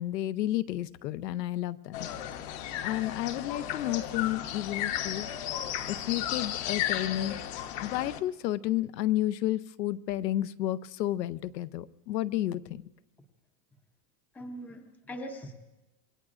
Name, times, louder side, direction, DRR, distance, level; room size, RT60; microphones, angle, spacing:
voice 1, 0.0-2.1 2.8-5.3 5.9-7.4 7.8-12.8, left 14 dB, 90° left, 15 dB, 0.8 m, -31 dB
sound 1, 1.9-8.2, left 11 dB, 45° left, 0.9 m, -34 dB
voice 2, 14.3-15.5, equal, 5° left, 5 dB, 0.6 m, -41 dB
26.5 x 21.0 x 2.5 m, 1.0 s
supercardioid pair, 150°, 48 cm